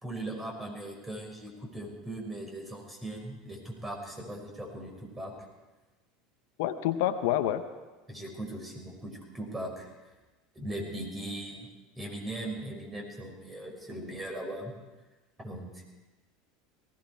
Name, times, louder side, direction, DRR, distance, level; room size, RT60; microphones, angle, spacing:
voice 1, 0.0-5.3 8.1-10.1 10.5-11.7 12.0-14.7 15.4-15.8, right 1 dB, 15° right, 1 dB, 5.2 m, -39 dB
voice 2, 6.6-7.6, left 12 dB, 65° left, 10 dB, 0.8 m, -27 dB
19.0 x 16.0 x 4.7 m, 1.2 s
hypercardioid pair, 75°, 0 cm